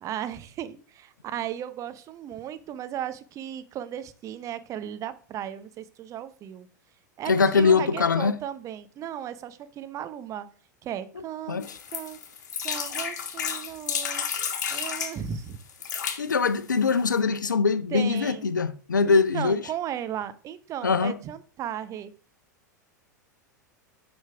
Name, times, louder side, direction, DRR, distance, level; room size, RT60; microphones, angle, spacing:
voice 1, 0.0-6.7 7.2-10.5 10.8-11.6 11.9-12.2 12.6-14.3 14.7-15.6 17.9-18.6 19.1-22.1, right 10 dB, 30° right, 0.7 m, -35 dB
voice 2, 7.3-8.4 11.5-11.8 16.2-19.6 20.8-21.1, left 5 dB, 80° left, 0.6 m, -22 dB
sound 1, 11.6-15.2 15.7-16.2 16.9-17.0 17.2-17.3, left 7 dB, 65° left, 1.4 m, -31 dB
7.3 x 5.3 x 3.4 m
figure-of-eight pair, 90°, 10 cm